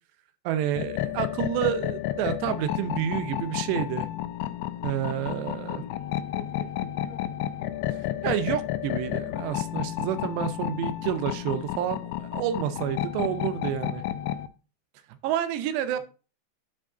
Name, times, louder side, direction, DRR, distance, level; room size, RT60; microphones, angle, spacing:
voice 1, 0.5-4.1 4.8-5.8 8.2-14.0 15.2-16.0, right 10 dB, 80° right, 11 dB, 2.8 m, -29 dB
sound 1, 0.8-14.5, left 13 dB, 90° left, 3.0 m, -31 dB
voice 2, 6.3-7.6 15.9-16.0, left 5 dB, 70° left, 5 dB, 3.1 m, -46 dB
9.6 x 5.0 x 3.8 m, 0.34 s
omnidirectional pair, 5.1 m